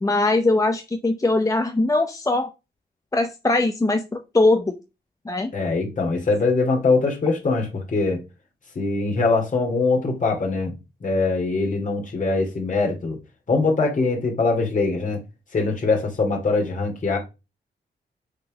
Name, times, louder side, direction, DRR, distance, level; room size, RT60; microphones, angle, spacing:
voice 1, 0.0-2.5 3.1-4.8 5.3-5.5, left 2 dB, 20° left, 0.7 m, -21 dB
voice 2, 5.5-8.2 8.7-10.7 11.0-13.2 13.5-15.2 15.5-17.2, left 3 dB, 45° left, 2.5 m, -22 dB
6.3 x 3.9 x 6.2 m
wide cardioid pair, 105°, 18 cm